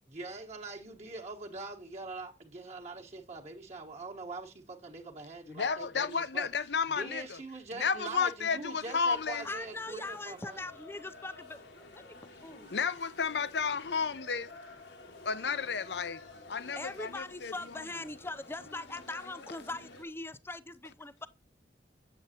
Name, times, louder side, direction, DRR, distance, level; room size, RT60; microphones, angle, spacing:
voice 1, 0.1-6.5 6.9-10.7, right 3 dB, 40° right, 1.2 m, -43 dB
voice 2, 5.5-7.4 7.8-9.4 12.7-14.5 15.3-16.2 16.5-17.5, left 5 dB, 65° left, 0.6 m, -32 dB
sound 1, 9.1-20.1, left 2 dB, 90° left, 2.4 m, -51 dB
voice 3, 9.4-12.7 16.7-21.3, left 2 dB, 15° left, 0.5 m, -41 dB
7.9 x 7.9 x 2.8 m
head